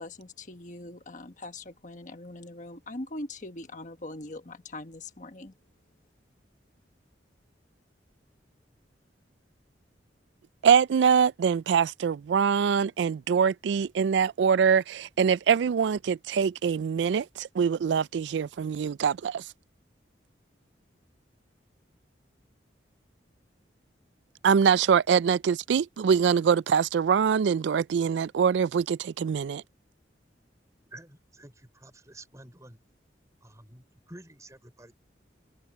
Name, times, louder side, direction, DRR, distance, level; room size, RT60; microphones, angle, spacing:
voice 1, 0.0-5.5, left 2 dB, 45° left, 1.4 m, -41 dB
voice 2, 10.6-19.5 24.4-29.6, right 7 dB, 75° right, 0.3 m, -24 dB
voice 3, 30.9-32.8 33.4-34.9, right 1 dB, 15° right, 5.0 m, -50 dB
open air
head